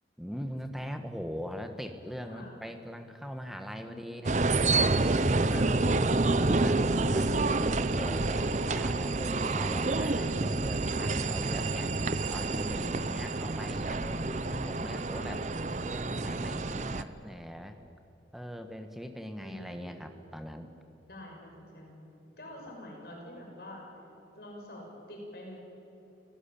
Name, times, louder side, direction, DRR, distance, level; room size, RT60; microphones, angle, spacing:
voice 1, 0.2-4.4 4.8-7.3 7.9-12.0 12.3-15.4 15.8-17.8 18.3-20.7, equal, ahead, 6 dB, 1.5 m, -41 dB
voice 2, 2.2-2.6 3.9-4.0 5.3-5.8 12.9-13.2 15.1-15.4 19.4-20.0 21.1-23.9 24.3-25.6, left 1 dB, 55° left, -1 dB, 6.5 m, -46 dB
sound 1, 4.2-17.0, right 3 dB, 40° right, 0.7 m, -28 dB
28.5 x 17.5 x 8.8 m, 2.8 s
head